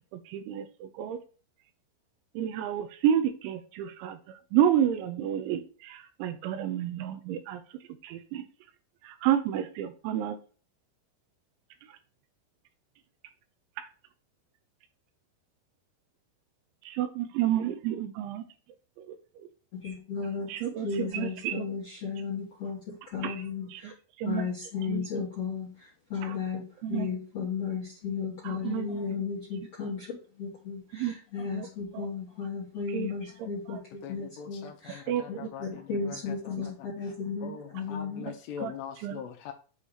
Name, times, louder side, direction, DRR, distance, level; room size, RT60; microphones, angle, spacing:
voice 1, 0.1-1.2 2.4-4.2 4.5-7.6 8.0-8.4 9.0-10.4 16.9-18.4 19.0-19.2 20.5-21.7 23.2-23.4 23.7-23.9 24.2-24.5 24.9-25.1 26.2-26.4 26.8-27.1 28.4-28.9 30.9-31.1 31.5-31.7 31.9-32.1 32.9-33.1 33.7-33.8 35.1-35.5 38.6-38.7 39.0-39.2, right 10 dB, 85° right, 9 dB, 3.0 m, -30 dB
voice 2, 19.7-20.5 20.8-22.8 23.1-23.9 24.2-25.7 26.1-30.1 30.4-35.0 35.3-38.2, left 5 dB, 60° left, -6 dB, 1.6 m, -34 dB
voice 3, 34.0-37.1 37.4-39.5, left 8 dB, 80° left, 2 dB, 2.7 m, -43 dB
8.2 x 2.8 x 4.8 m, 0.40 s
omnidirectional pair, 5.4 m